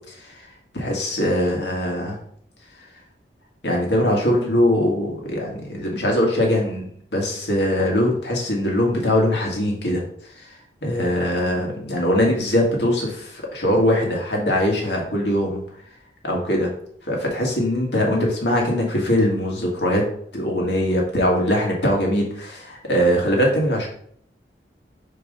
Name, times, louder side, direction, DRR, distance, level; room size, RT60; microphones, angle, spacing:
voice 1, 0.7-2.2 3.6-10.0 10.4-10.5 10.8-15.6 16.2-16.7 17.1-20.1 20.3-23.9, equal, 80° left, -1 dB, 2.0 m, -21 dB
4.8 x 4.7 x 5.3 m, 0.63 s
head